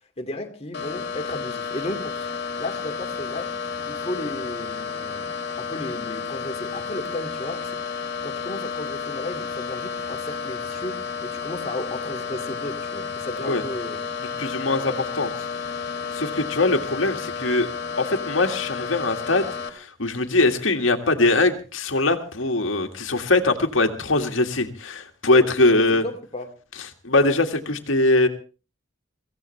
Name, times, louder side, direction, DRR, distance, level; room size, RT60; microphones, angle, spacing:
voice 1, 0.2-2.3 2.6-3.5 3.9-5.3 5.6-7.7 8.2-14.0 25.7-26.5, left 1 dB, 30° left, 4 dB, 2.3 m, -34 dB
sound 1, 0.7-19.7, left 5 dB, 55° left, 2.4 m, -31 dB
voice 2, 14.4-15.3 16.1-17.7 18.0-26.0 26.8-28.3, left 2 dB, 80° left, 6 dB, 1.9 m, -22 dB
23.5 x 16.0 x 3.3 m, 0.35 s
head